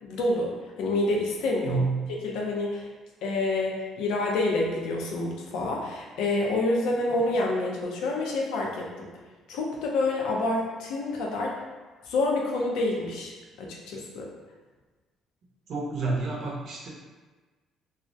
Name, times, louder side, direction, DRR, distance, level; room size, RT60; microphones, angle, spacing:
voice 1, 0.0-0.5 0.8-1.8 2.2-2.9 3.2-9.1 9.5-11.5 12.1-13.3 13.6-14.3, left 2 dB, 85° left, -1 dB, 0.5 m, -27 dB
voice 2, 1.6-2.1 15.7-16.9, right 3 dB, 55° right, -4 dB, 0.6 m, -29 dB
2.3 x 2.0 x 2.6 m, 1.3 s
cardioid pair, 120°, 0 cm